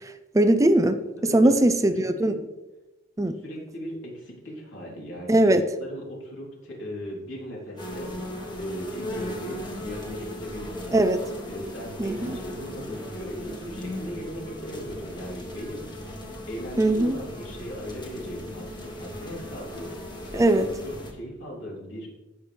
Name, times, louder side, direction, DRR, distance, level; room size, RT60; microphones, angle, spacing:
voice 1, 0.0-2.3 3.2-3.3 5.3-5.6 10.9-11.2 12.0-12.4 16.8-17.2 20.3-20.7, right 1 dB, 15° right, 9 dB, 0.5 m, -21 dB
voice 2, 1.3-1.6 1.9-2.3 3.4-5.5 5.8-8.1 8.5-11.0 11.5-22.1, equal, 75° left, -4 dB, 3.6 m, -38 dB
sound 1, 7.8-21.1, left 1 dB, 25° left, 1.6 m, -37 dB
17.0 x 5.7 x 3.4 m, 1.1 s
head